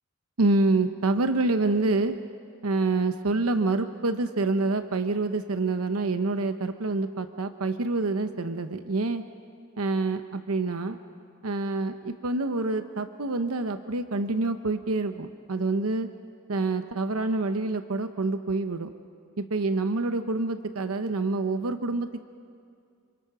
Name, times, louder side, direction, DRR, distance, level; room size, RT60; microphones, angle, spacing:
voice 1, 0.4-2.2 2.6-9.2 9.8-11.0 11.4-16.1 16.5-18.9 19.4-22.2, right 3 dB, 80° right, 9 dB, 0.9 m, -27 dB
27.5 x 26.0 x 6.0 m, 2.3 s
head